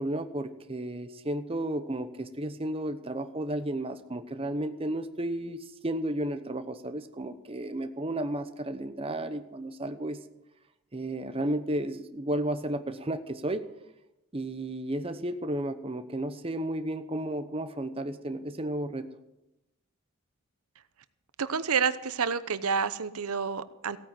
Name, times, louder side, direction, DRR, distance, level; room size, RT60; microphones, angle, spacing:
voice 1, 0.0-10.2 10.9-13.7 14.3-19.1, right 1 dB, 25° right, 9 dB, 0.9 m, -33 dB
voice 2, 21.4-24.0, right 6 dB, 80° right, 14 dB, 0.8 m, -29 dB
16.0 x 9.2 x 7.7 m, 0.92 s
head